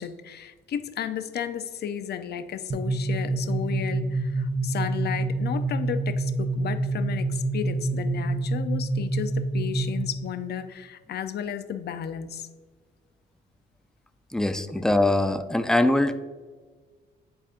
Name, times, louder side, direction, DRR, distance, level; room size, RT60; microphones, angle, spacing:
voice 1, 0.0-12.5, left 8 dB, 55° left, 10 dB, 0.5 m, -33 dB
sound 1, 2.7-10.3, right 2 dB, 30° right, 0.9 m, -27 dB
voice 2, 14.3-16.2, left 1 dB, 5° left, 9 dB, 0.4 m, -22 dB
10.0 x 4.1 x 2.5 m, 1.5 s
cardioid pair, 90°, 20 cm